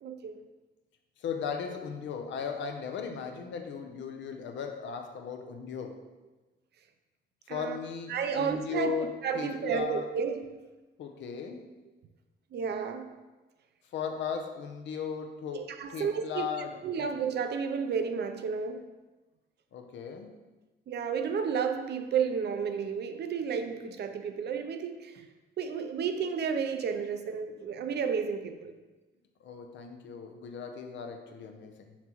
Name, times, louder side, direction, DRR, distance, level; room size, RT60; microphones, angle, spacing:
voice 1, 0.0-0.3 7.5-7.8 8.1-10.5 12.5-13.2 15.5-16.5 16.8-18.9 20.9-25.3 25.6-28.7, right 6 dB, 65° right, 8 dB, 0.6 m, -32 dB
voice 2, 1.2-6.0 7.5-10.1 11.0-11.7 13.9-17.1 19.7-20.3 29.4-32.0, left 6 dB, 90° left, 5 dB, 0.7 m, -37 dB
5.8 x 5.8 x 3.0 m, 1.2 s
cardioid pair, 130°, 18 cm